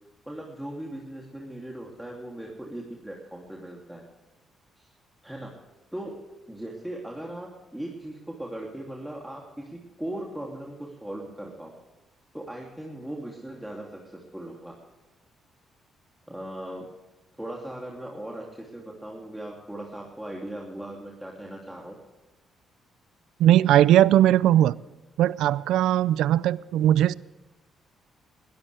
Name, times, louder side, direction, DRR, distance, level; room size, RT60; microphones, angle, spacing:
voice 1, 0.3-4.0 4.8-4.9 5.2-5.5 5.9-6.1 6.5-11.7 12.3-14.7 16.3-16.9 17.4-22.0, right 1 dB, 5° right, 3.0 m, -38 dB
voice 2, 23.4-24.7 25.2-27.1, right 12 dB, 85° right, 0.4 m, -19 dB
21.5 x 13.0 x 3.5 m
cardioid pair, 90°, 0 cm